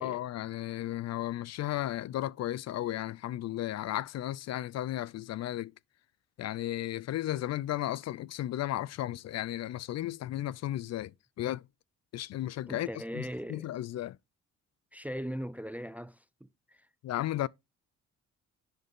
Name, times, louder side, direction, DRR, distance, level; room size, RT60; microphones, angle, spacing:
voice 1, 0.0-5.7 6.4-11.1 11.4-11.6 12.1-12.9 13.1-14.2 17.0-17.5, left 13 dB, 60° left, 0.4 m, -34 dB
voice 2, 12.7-13.7 14.9-16.9, equal, 5° right, 0.4 m, -40 dB
10.5 x 3.9 x 3.5 m
cardioid pair, 90°, 30 cm